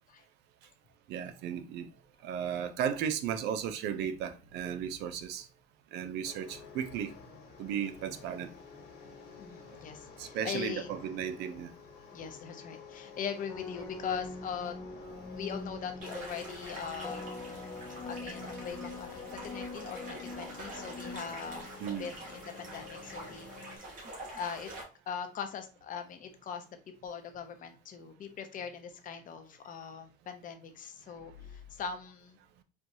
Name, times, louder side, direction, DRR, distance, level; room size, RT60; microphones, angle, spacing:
voice 1, 1.1-1.9 2.2-5.5 5.9-7.1 7.6-8.5 10.2-11.7 16.9-17.0 21.8-22.1, right 8 dB, 85° right, 0.5 m, -35 dB
sound 1, 6.2-23.8, left 5 dB, 80° left, 1.4 m, -50 dB
voice 2, 9.4-10.9 12.1-14.8 15.3-17.6 17.9-23.8 24.3-24.7 25.1-26.6 27.0-32.4, left 7 dB, 55° left, 0.7 m, -41 dB
sound 2, 13.5-21.6, left 2 dB, 15° left, 0.4 m, -44 dB
sound 3, 16.0-24.8, right 2 dB, 50° right, 1.6 m, -46 dB
4.4 x 2.3 x 2.6 m
cardioid pair, 110°, 17 cm